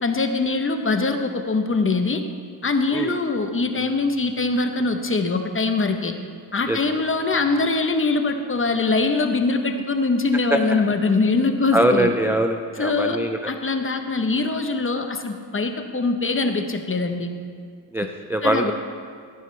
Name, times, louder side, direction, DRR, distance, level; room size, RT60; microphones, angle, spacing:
voice 1, 0.0-2.2 2.6-6.1 6.5-12.1 12.8-13.2 13.4-17.3 18.4-18.7, left 3 dB, 25° left, 6 dB, 0.9 m, -23 dB
voice 2, 11.7-13.5 17.9-18.7, right 1 dB, 5° right, 5 dB, 0.4 m, -22 dB
15.0 x 9.5 x 3.3 m, 2.1 s
cardioid pair, 85°, 49 cm